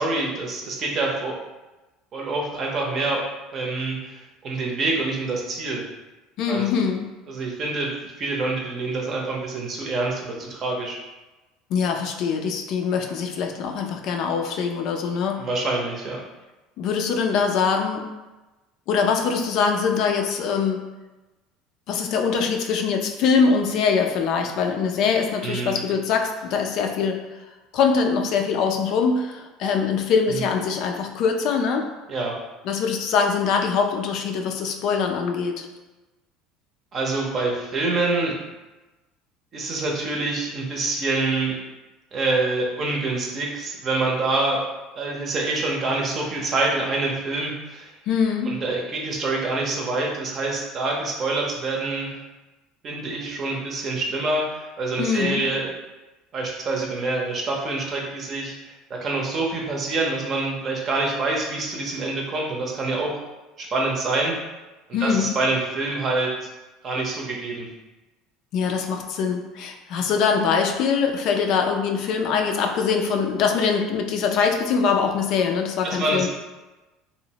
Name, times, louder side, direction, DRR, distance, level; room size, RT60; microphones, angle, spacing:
voice 1, 0.0-1.4 2.1-3.2 3.5-5.8 6.5-6.7 7.3-11.0 15.4-16.2 25.4-25.8 30.3-30.4 32.1-32.4 36.9-38.3 39.5-41.5 42.1-44.6 45.0-47.9 48.4-52.2 52.8-55.7 56.3-63.2 63.6-64.3 65.0-66.5 66.8-67.7 75.8-76.3, right 3 dB, 40° right, -1 dB, 0.6 m, -26 dB
voice 2, 6.4-7.0 11.7-15.4 16.8-18.1 18.9-20.8 21.9-27.2 27.7-31.9 32.6-35.7 48.1-48.5 55.0-55.4 64.9-65.3 68.5-76.3, left 5 dB, 60° left, 3 dB, 0.3 m, -23 dB
2.8 x 2.0 x 2.8 m, 1.1 s
supercardioid pair, 105°, 0 cm